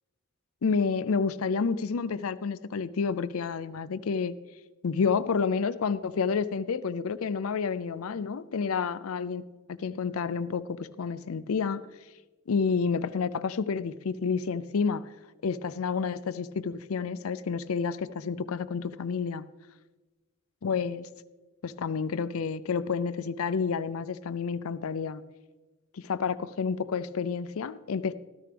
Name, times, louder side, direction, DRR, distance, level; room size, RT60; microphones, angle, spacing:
voice 1, 0.6-4.4 4.8-9.4 9.7-11.8 12.5-15.0 15.4-19.5 20.6-21.1 21.6-25.2 25.9-28.1, left 5 dB, 85° left, 15 dB, 0.5 m, -29 dB
13.5 x 13.5 x 3.4 m, 1.2 s
head